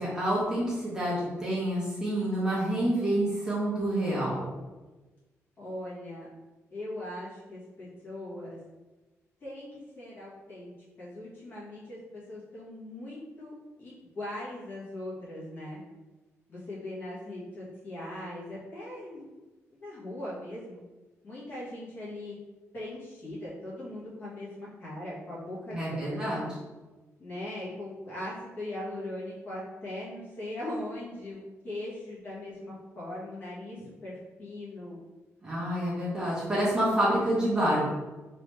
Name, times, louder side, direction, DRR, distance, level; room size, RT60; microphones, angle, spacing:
voice 1, 0.0-4.5 25.7-26.4 35.4-37.8, right 1 dB, 15° right, -8 dB, 1.2 m, -28 dB
voice 2, 5.6-6.3 6.7-8.6 9.4-10.7 11.0-15.8 16.5-19.2 19.8-20.8 21.2-22.3 22.7-26.6 27.2-35.0, left 1 dB, 45° left, -8 dB, 1.4 m, -40 dB
3.2 x 3.0 x 3.2 m, 1.2 s
wide cardioid pair, 150°, 5 cm